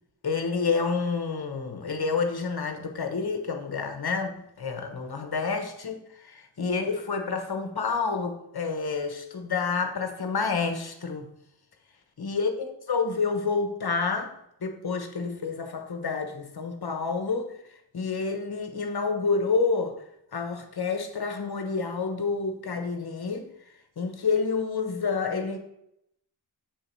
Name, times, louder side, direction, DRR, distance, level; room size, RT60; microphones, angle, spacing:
voice 1, 0.2-11.3 12.2-14.3 14.6-17.5 17.9-19.9 20.3-23.5 24.0-25.6, left 4 dB, 55° left, 6 dB, 1.1 m, -29 dB
7.2 x 2.9 x 5.3 m, 0.76 s
cardioid pair, 45°, 45 cm